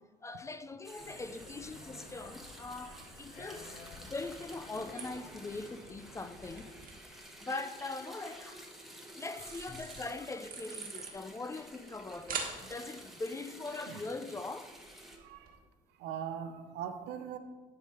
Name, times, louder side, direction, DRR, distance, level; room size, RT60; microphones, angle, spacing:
voice 1, 0.2-6.7 7.0-8.6 9.1-14.7, left 3 dB, 15° left, 0.4 m, -42 dB
sound 1, 0.8-15.2, right 1 dB, ahead, 1.1 m, -52 dB
sound 2, 1.0-6.7, left 2 dB, 70° left, 2.6 m, -52 dB
sound 3, 1.5-15.6, right 5 dB, 60° right, 1.5 m, -49 dB
voice 2, 15.2-15.6 16.0-17.4, right 8 dB, 90° right, 0.7 m, -41 dB
10.5 x 3.6 x 5.4 m
cardioid pair, 110°, 17 cm